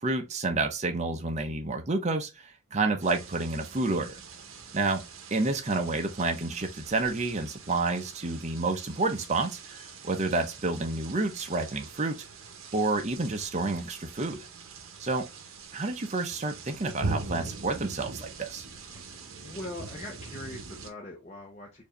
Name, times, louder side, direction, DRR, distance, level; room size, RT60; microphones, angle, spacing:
voice 1, 0.0-4.2 4.7-5.0 5.3-12.2 12.7-14.5 15.0-15.2 15.7-18.7, right 3 dB, 35° right, 0.6 m, -29 dB
sound 1, 3.0-20.9, right 3 dB, 75° right, 0.7 m, -42 dB
voice 2, 19.4-21.8, left 1 dB, 30° left, 0.7 m, -41 dB
4.5 x 2.6 x 2.9 m
head